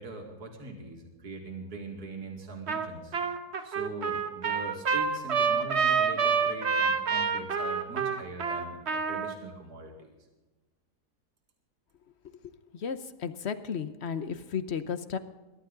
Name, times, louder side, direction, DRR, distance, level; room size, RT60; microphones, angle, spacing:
voice 1, 0.0-3.1 3.6-10.1, right 2 dB, 70° right, 1 dB, 2.7 m, -42 dB
Trumpet, 2.7-2.9 3.1-9.3, right 6 dB, 45° right, 1.3 m, -27 dB
voice 2, 12.7-15.2, left 7 dB, 50° left, 11 dB, 0.9 m, -34 dB
22.0 x 11.5 x 3.9 m, 1.2 s
omnidirectional pair, 1.7 m